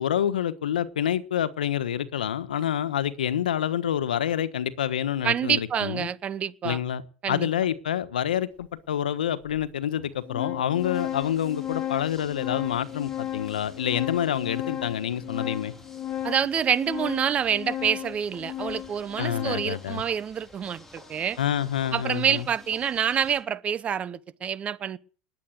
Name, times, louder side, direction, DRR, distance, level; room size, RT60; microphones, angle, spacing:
voice 1, 0.0-6.1 6.6-7.0 7.3-15.7 19.2-20.0 21.4-22.5, left 10 dB, 90° left, 1.3 m, -27 dB
voice 2, 5.2-6.8 7.2-7.5 16.2-21.4 21.9-25.0, right 8 dB, 30° right, 0.9 m, -27 dB
Organ, 8.6-8.7 9.6-9.7 10.0-19.9, left 12 dB, 35° left, 1.8 m, -35 dB
sound 1, 10.7-23.4, left 2 dB, 5° left, 4.3 m, -51 dB
20.0 x 8.4 x 8.0 m
hypercardioid pair, 105°, 4 cm